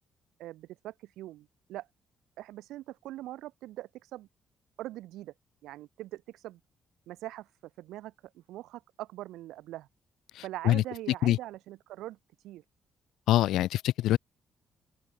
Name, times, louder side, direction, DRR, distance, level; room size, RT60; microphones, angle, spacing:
voice 1, 0.4-1.9 2.4-4.3 4.8-5.3 5.6-6.6 7.1-7.5 7.8-9.9 10.4-12.2 12.4-12.6, right 15 dB, 90° right, 5.2 m, -42 dB
voice 2, 13.3-14.2, left 14 dB, 85° left, 1.1 m, -24 dB
cardioid pair, 90°, 0 cm